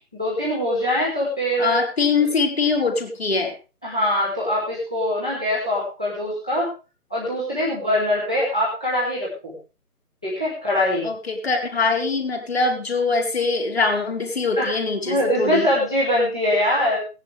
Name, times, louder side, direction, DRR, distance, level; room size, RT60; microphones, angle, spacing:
voice 1, 0.1-1.8 3.8-6.7 7.1-9.3 10.2-11.1 14.6-14.7 15.0-17.0, left 1 dB, 5° left, -9 dB, 1.2 m, -23 dB
voice 2, 1.6-3.5 11.0-15.7, left 4 dB, 40° left, 2 dB, 3.8 m, -23 dB
19.0 x 10.0 x 3.4 m, 0.33 s
figure-of-eight pair, 170°, 46 cm